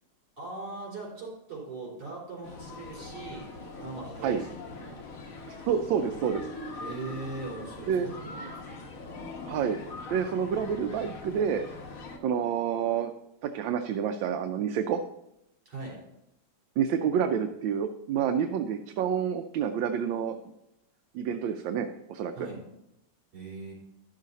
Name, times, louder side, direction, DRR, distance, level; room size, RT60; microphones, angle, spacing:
voice 1, 0.4-3.5 3.8-5.0 6.8-8.8 15.7-16.0 22.4-22.6 23.3-23.7, right 3 dB, 65° right, -3 dB, 4.6 m, -40 dB
sound 1, 2.4-12.2, left 3 dB, 50° left, 1.5 m, -42 dB
voice 2, 5.5-6.5 7.9-8.1 9.5-9.8 10.1-11.6 12.2-13.1 13.4-15.0 16.8-20.4 21.1-22.5, right 7 dB, 80° right, 6 dB, 1.3 m, -28 dB
11.5 x 6.5 x 4.1 m, 0.84 s
omnidirectional pair, 2.1 m